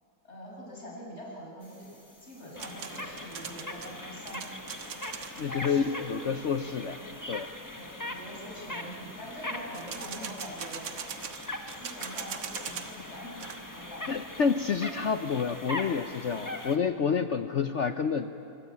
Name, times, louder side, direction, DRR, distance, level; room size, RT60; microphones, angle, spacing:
voice 1, 0.2-1.9 2.2-4.5 5.5-6.1 6.8-6.9 7.7-11.0 11.8-13.5 13.7-14.3, equal, 35° left, -4 dB, 7.4 m, -44 dB
sound 1, 1.6-16.8, left 1 dB, 10° left, 1.2 m, -41 dB
sound 2, 2.6-5.5 9.7-13.0 13.3-13.6, right 7 dB, 75° right, 2.2 m, -40 dB
voice 2, 5.4-7.0 7.3-7.5 14.1-18.3, left 6 dB, 70° left, 9 dB, 0.7 m, -29 dB
26.0 x 24.0 x 8.5 m, 2.9 s
omnidirectional pair, 2.1 m